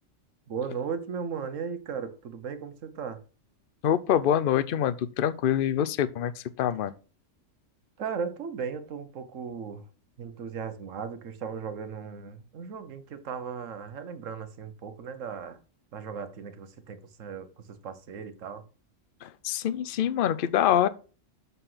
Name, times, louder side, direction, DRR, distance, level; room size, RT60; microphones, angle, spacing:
voice 1, 0.5-3.2 8.0-9.8 10.2-15.6 15.9-18.6, right 6 dB, 75° right, 1.4 m, -36 dB
voice 2, 3.8-6.9 19.2-20.9, left 10 dB, 55° left, 0.7 m, -25 dB
6.9 x 5.5 x 5.7 m
omnidirectional pair, 1.3 m